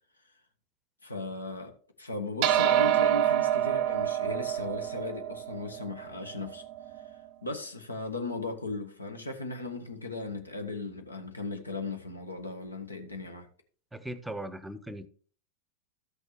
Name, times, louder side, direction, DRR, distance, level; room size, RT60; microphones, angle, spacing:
voice 1, 1.0-1.7 2.0-6.6 7.4-13.5, left 3 dB, 80° left, 1.1 m, -37 dB
sound 1, 2.4-7.1, right 12 dB, 45° right, 0.6 m, -27 dB
voice 2, 13.9-15.1, right 1 dB, 5° right, 0.7 m, -38 dB
13.5 x 6.5 x 3.1 m
figure-of-eight pair, 90°, 0 cm